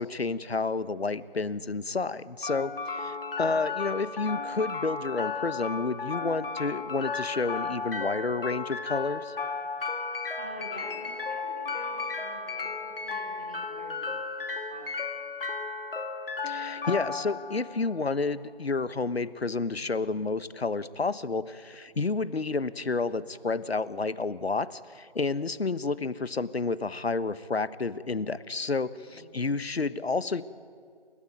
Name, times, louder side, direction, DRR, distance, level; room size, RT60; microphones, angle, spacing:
voice 1, 0.0-9.3 16.4-30.4, left 3 dB, 80° left, 15 dB, 1.2 m, -30 dB
sound 1, 2.4-18.4, left 4 dB, 65° left, 2.5 m, -34 dB
voice 2, 10.4-14.1 14.7-15.2 29.1-29.4, equal, 10° right, 1 dB, 0.7 m, -46 dB
28.5 x 14.5 x 9.3 m, 2.2 s
figure-of-eight pair, 165°, 31 cm